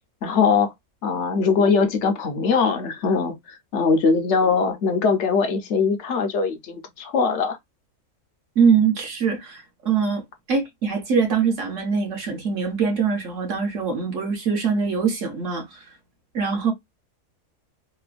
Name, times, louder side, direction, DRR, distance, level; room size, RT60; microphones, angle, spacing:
voice 1, 0.2-0.7 1.0-7.6, left 5 dB, 60° left, 0.8 m, -21 dB
voice 2, 8.6-10.2 10.5-15.9 16.3-16.7, right 5 dB, 60° right, 1.0 m, -23 dB
3.1 x 2.1 x 2.4 m
omnidirectional pair, 1.6 m